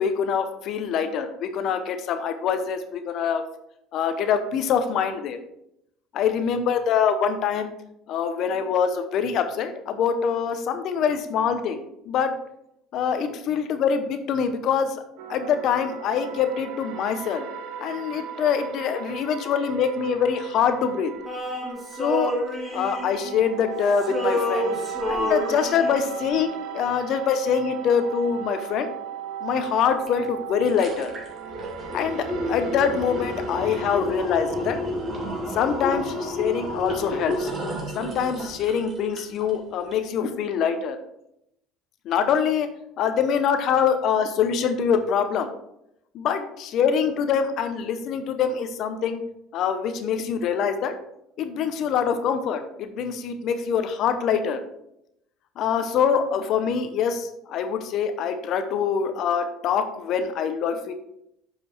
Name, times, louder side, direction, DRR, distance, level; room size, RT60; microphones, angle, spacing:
voice 1, 0.0-3.4 3.9-5.4 6.1-7.7 8.1-12.3 12.9-15.0 15.3-17.4 17.8-21.1 22.0-22.3 22.7-24.7 25.1-26.5 26.7-28.9 29.4-31.1 31.9-34.8 35.5-37.5 37.9-41.0 42.0-42.7 43.0-45.5 46.1-49.2 49.5-50.9 51.4-54.6 55.6-60.9, left 7 dB, 60° left, 8 dB, 0.8 m, -24 dB
sound 1, 15.2-34.0, right 8 dB, 65° right, 0.8 m, -37 dB
Male singing, 21.3-23.7 24.0-26.1, equal, 5° left, 2.5 m, -28 dB
sound 2, 30.1-30.2 30.5-39.5 39.9-40.0, left 1 dB, 35° right, 2.2 m, -31 dB
6.8 x 5.2 x 4.3 m, 0.80 s
supercardioid pair, 105°, 0 cm